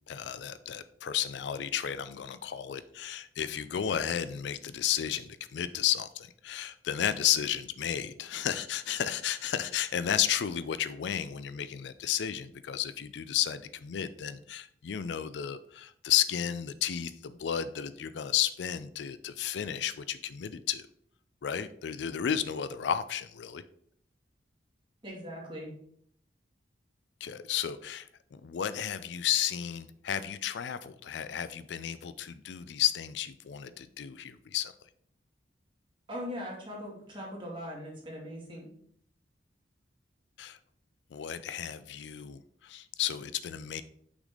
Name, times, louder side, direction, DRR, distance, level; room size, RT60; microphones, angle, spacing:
voice 1, 0.1-20.8 21.4-23.6 27.2-34.7 40.4-40.6 41.1-43.8, left 10 dB, 70° left, 13 dB, 0.4 m, -33 dB
voice 2, 25.0-25.7 36.1-38.7, equal, 30° right, -3 dB, 2.4 m, -40 dB
6.0 x 4.1 x 4.9 m, 0.65 s
head